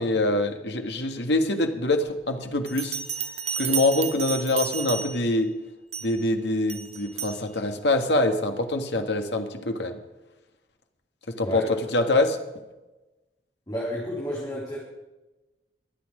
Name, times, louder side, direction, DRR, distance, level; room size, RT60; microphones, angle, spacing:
voice 1, 0.0-3.0 3.6-5.5 6.0-10.0 11.4-12.4, left 2 dB, 75° left, 6 dB, 1.7 m, -24 dB
Bell, 2.7-5.4 5.9-6.2 6.7-7.4, right 8 dB, 35° right, 1.1 m, -32 dB
voice 2, 11.4-11.7 13.7-14.8, equal, 25° left, -5 dB, 3.6 m, -31 dB
23.5 x 8.8 x 5.0 m, 1.1 s
head